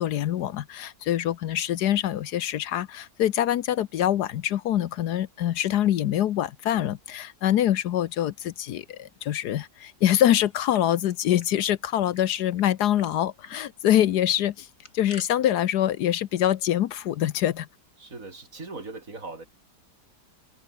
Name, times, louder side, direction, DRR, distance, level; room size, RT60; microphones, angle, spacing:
voice 1, 0.0-14.7 14.9-17.7, left 11 dB, 70° left, 1.3 m, -25 dB
sound 1, 10.5-11.5 11.8-11.9 12.1-12.7 13.0-13.1 13.4-13.6 14.6-15.3, left 2 dB, 50° left, 4.9 m, -48 dB
voice 2, 18.0-19.5, right 3 dB, 50° right, 4.0 m, -39 dB
omnidirectional pair, 1.8 m